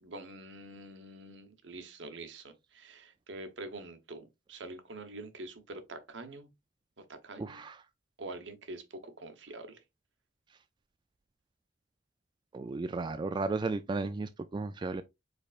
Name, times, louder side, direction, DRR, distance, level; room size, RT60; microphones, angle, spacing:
voice 1, 0.0-6.5 7.0-7.6 8.2-9.8, right 2 dB, 70° right, 1.0 m, -45 dB
voice 2, 7.4-7.8 12.5-15.0, right 3 dB, 25° right, 0.3 m, -34 dB
5.0 x 4.2 x 2.4 m
head